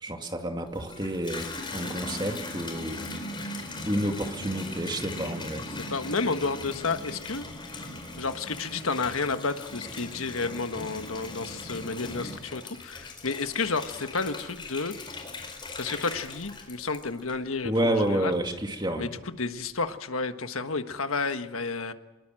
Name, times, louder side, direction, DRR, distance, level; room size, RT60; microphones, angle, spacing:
voice 1, 0.0-3.0 3.9-5.7 17.6-19.1, right 1 dB, 20° right, 4 dB, 2.4 m, -29 dB
Water tap faucet / Bathtub (filling or washing), 0.7-17.6 18.1-18.6, left 2 dB, 25° left, 4.6 m, -39 dB
voice 2, 5.5-7.9 8.2-14.9 15.8-18.4 19.0-21.9, left 4 dB, 90° left, 8 dB, 1.5 m, -31 dB
25.0 x 22.0 x 7.7 m, 1.1 s
head